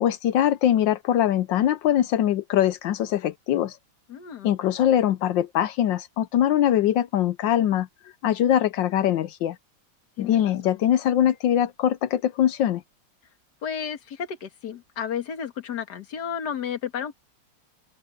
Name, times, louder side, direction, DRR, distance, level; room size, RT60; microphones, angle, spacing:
voice 1, 0.0-3.8 4.4-7.9 8.2-9.6 10.2-12.8, left 11 dB, 70° left, 1.2 m, -22 dB
voice 2, 4.1-4.5 10.2-10.8 13.6-17.1, left 8 dB, 50° left, 2.1 m, -32 dB
open air
omnidirectional pair, 2.4 m